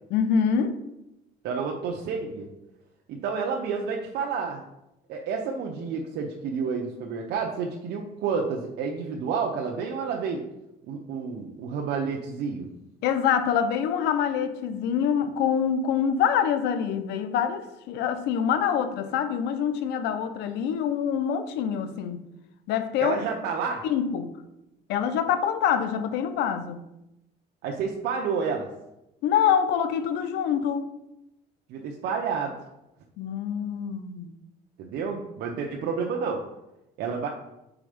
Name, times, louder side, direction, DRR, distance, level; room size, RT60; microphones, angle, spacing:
voice 1, 0.1-0.8 13.0-22.2 22.7-23.2 23.8-24.3 24.9-26.8 29.2-30.9 33.2-34.3, left 8 dB, 85° left, 10 dB, 0.7 m, -25 dB
voice 2, 1.4-2.5 3.1-4.6 5.1-10.4 10.9-12.7 23.0-23.8 27.6-28.7 31.7-32.6 34.8-36.4 37.0-37.3, right 5 dB, 75° right, 0 dB, 0.7 m, -30 dB
4.9 x 4.2 x 5.0 m, 0.90 s
cardioid pair, 110°, 17 cm